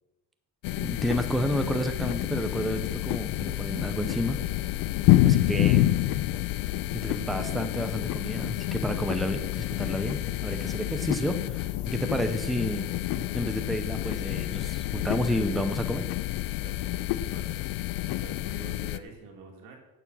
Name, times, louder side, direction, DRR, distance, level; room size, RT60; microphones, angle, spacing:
sound 1, 0.6-19.0, left 15 dB, 90° left, 0.6 m, -28 dB
sound 2, 0.8-7.7, left 1 dB, 45° left, 3.8 m, -53 dB
voice 1, 0.8-4.4 5.2-6.0 7.0-12.9 13.2-16.1, equal, ahead, 7 dB, 0.5 m, -31 dB
voice 2, 16.6-19.8, right 3 dB, 85° right, 1 dB, 2.7 m, -48 dB
11.0 x 7.1 x 5.9 m, 1.1 s
cardioid pair, 160°, 33 cm